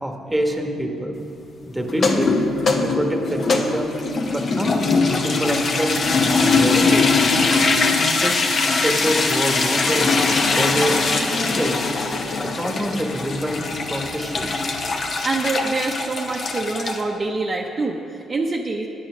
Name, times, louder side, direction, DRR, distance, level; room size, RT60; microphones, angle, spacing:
voice 1, 0.0-1.1 1.6-2.3 2.8-3.9 4.3-6.0 6.4-7.2 7.8-10.1 10.5-11.0 11.3-11.8 12.4-14.5, equal, 5° right, 2 dB, 1.3 m, -25 dB
sound 1, 1.9-17.0, left 3 dB, 50° left, 1.0 m, -21 dB
voice 2, 15.2-18.9, right 3 dB, 30° right, 0 dB, 0.7 m, -25 dB
9.0 x 8.9 x 6.1 m, 2.8 s
cardioid pair, 90°, 0 cm